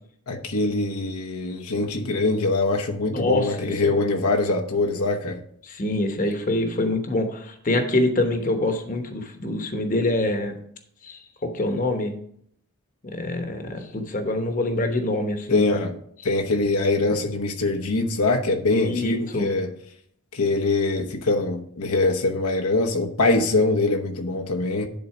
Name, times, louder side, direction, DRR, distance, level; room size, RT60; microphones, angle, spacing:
voice 1, 0.3-5.4 15.5-15.9 16.2-19.7 20.3-24.9, left 2 dB, 85° left, 1.0 m, -23 dB
voice 2, 3.1-4.0 5.6-10.6 11.0-12.2 13.1-15.8 18.7-19.5, left 1 dB, 35° left, 1.0 m, -25 dB
10.5 x 4.0 x 5.8 m
head